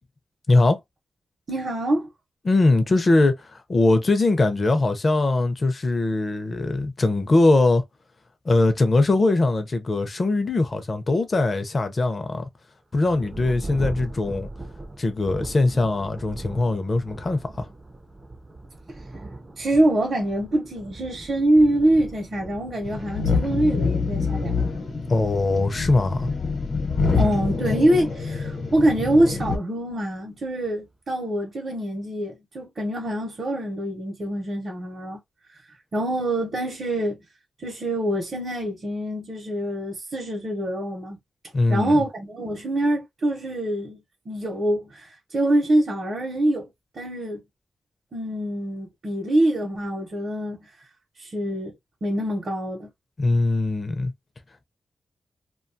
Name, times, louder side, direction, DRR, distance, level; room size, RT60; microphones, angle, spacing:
voice 1, 0.5-0.8 2.4-7.8 8.5-12.5 12.9-14.5 15.0-17.7 25.1-26.3 41.5-42.0 53.2-54.1, left 2 dB, 35° left, 0.5 m, -21 dB
voice 2, 1.5-2.1 18.9-19.0 19.6-24.5 27.2-35.2 35.9-37.2 37.6-41.2 41.7-46.7 46.9-47.4 48.1-50.7 51.2-51.7 52.0-52.9, right 1 dB, 45° right, 0.8 m, -24 dB
Thunder, 13.0-29.1 29.8-29.9 30.5-30.9, right 2 dB, 20° right, 0.4 m, -40 dB
sound 1, 22.8-29.6, left 4 dB, 65° left, 0.9 m, -26 dB
2.7 x 2.3 x 2.5 m
wide cardioid pair, 145°, 0 cm